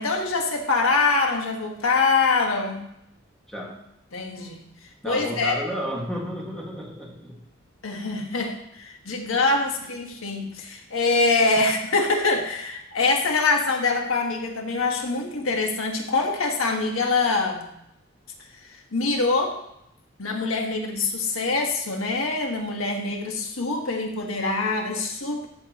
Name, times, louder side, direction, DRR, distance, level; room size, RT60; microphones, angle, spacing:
voice 1, 0.0-2.9 4.1-4.6 5.0-5.6 7.8-17.7 18.5-19.6 20.2-25.5, left 3 dB, 85° left, 2 dB, 1.5 m, -24 dB
voice 2, 3.5-3.8 5.0-7.4, equal, ahead, -4 dB, 2.0 m, -32 dB
14.0 x 6.8 x 3.1 m, 0.77 s
head